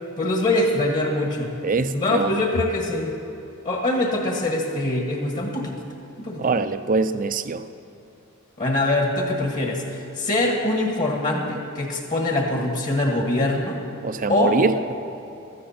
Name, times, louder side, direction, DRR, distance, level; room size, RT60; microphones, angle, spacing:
voice 1, 0.2-1.6 1.9-3.1 3.6-5.8 6.2-6.5 8.6-13.8 14.3-14.6, left 2 dB, 35° left, 1 dB, 1.5 m, -23 dB
voice 2, 1.6-2.4 6.4-7.6 14.0-14.9, right 4 dB, 40° right, 11 dB, 0.5 m, -23 dB
16.0 x 13.5 x 4.3 m, 2.9 s
head